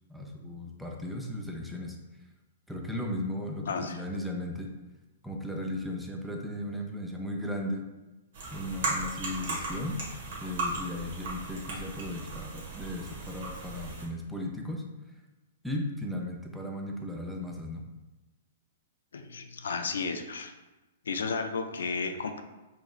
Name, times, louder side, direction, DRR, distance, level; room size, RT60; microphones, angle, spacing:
voice 1, 0.1-2.0 2.7-4.7 5.2-7.8 8.5-10.0 10.4-14.9 15.6-17.8, left 1 dB, ahead, 0 dB, 0.5 m, -36 dB
voice 2, 3.7-4.0 19.1-20.5 21.1-22.4, left 4 dB, 80° left, 7 dB, 0.4 m, -33 dB
sound 1, 8.3-14.1, right 3 dB, 65° right, 1.5 m, -36 dB
5.1 x 3.0 x 2.4 m, 1.1 s
hypercardioid pair, 135°, 0 cm